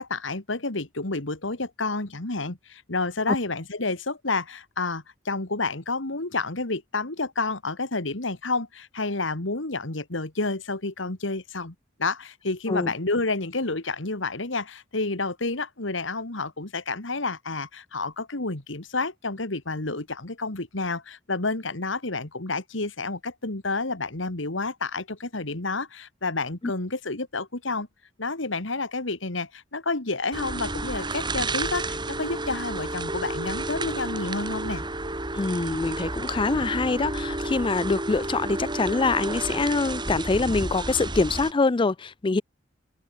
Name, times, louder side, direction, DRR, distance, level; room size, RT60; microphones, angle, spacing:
voice 1, 0.0-11.7 12.0-27.9 28.2-34.8, left 3 dB, 75° left, 2.4 m, -30 dB
sound 1, 30.3-41.5, right 2 dB, 25° right, 5.3 m, -31 dB
voice 2, 35.3-42.4, left 3 dB, 25° left, 0.4 m, -24 dB
head